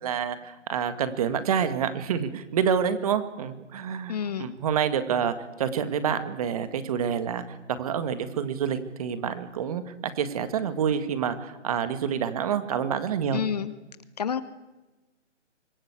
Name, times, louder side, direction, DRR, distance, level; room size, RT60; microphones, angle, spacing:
voice 1, 0.0-13.4, right 7 dB, 30° right, 11 dB, 1.9 m, -28 dB
voice 2, 4.1-4.5 13.3-13.7 14.2-14.4, left 8 dB, 35° left, 14 dB, 1.0 m, -28 dB
25.0 x 21.5 x 8.4 m, 1.1 s
hypercardioid pair, 160°, 37 cm